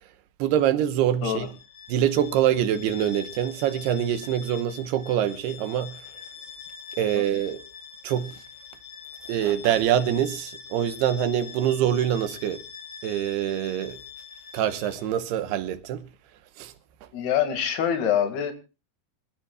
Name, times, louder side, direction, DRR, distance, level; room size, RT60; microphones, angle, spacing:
voice 1, 0.4-1.5 1.9-6.0 7.0-7.6 8.0-8.3 9.3-12.6 13.0-14.0 14.5-16.1 16.6-16.7, right 10 dB, 90° right, 3.0 m, -25 dB
Bowed string instrument, 1.3-15.1, left 7 dB, 60° left, 4.8 m, -44 dB
voice 2, 17.1-18.5, left 9 dB, 75° left, 4.0 m, -25 dB
26.0 x 15.0 x 2.3 m
omnidirectional pair, 4.6 m